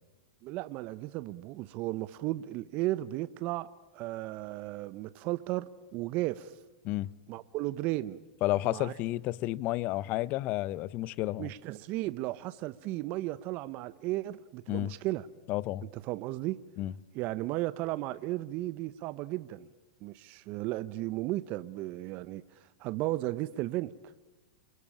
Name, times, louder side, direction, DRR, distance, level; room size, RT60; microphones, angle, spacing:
voice 1, 0.4-3.7 3.9-6.6 7.3-8.2 8.6-8.9 11.4-15.3 15.9-16.6 17.1-19.7 20.0-22.4 22.8-23.9, right 17 dB, 45° right, 0.9 m, -34 dB
voice 2, 8.4-11.5 14.7-14.9 15.5-15.8 16.8-16.9, left 16 dB, 45° left, 0.9 m, -31 dB
28.5 x 23.5 x 8.8 m
hypercardioid pair, 110°, 4 cm